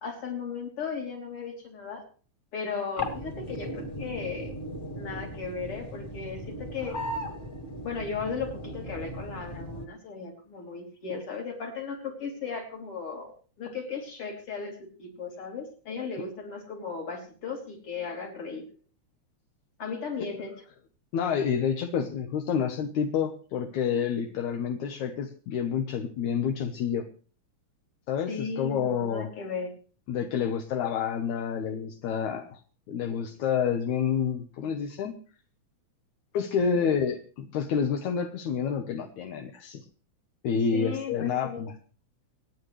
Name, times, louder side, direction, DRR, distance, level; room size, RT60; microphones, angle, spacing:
voice 1, 0.0-2.0 2.5-4.5 5.0-7.0 7.8-13.3 13.6-18.7 19.8-20.6 28.3-29.7 36.7-36.9 40.7-41.6, left 5 dB, 45° left, 1 dB, 4.1 m, -36 dB
sound 1, 3.0-9.9, equal, 25° left, 2.5 m, -37 dB
voice 2, 21.1-27.0 28.1-29.3 30.1-32.6 32.9-35.1 36.3-39.9 40.4-41.7, left 7 dB, 75° left, 5 dB, 2.4 m, -29 dB
27.5 x 9.4 x 3.2 m, 0.40 s
omnidirectional pair, 3.4 m